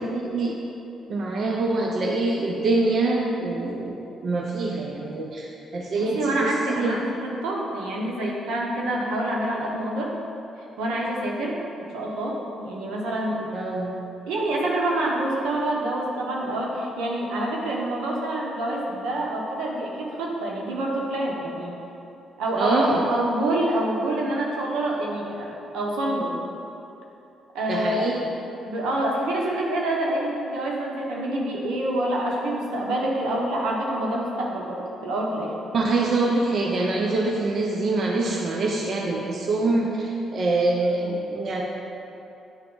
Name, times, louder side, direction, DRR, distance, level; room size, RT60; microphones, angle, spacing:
voice 1, 0.1-0.6 1.1-7.0 13.5-13.9 22.5-23.0 27.7-28.2 35.7-41.6, right 2 dB, 55° right, -1 dB, 0.7 m, -25 dB
voice 2, 6.0-10.1 10.8-11.6 11.9-13.4 14.3-21.8 22.4-26.4 27.5-28.0 28.7-35.5, right 1 dB, 90° right, -2 dB, 1.1 m, -27 dB
10.0 x 3.4 x 3.9 m, 2.9 s
cardioid pair, 90°, 0 cm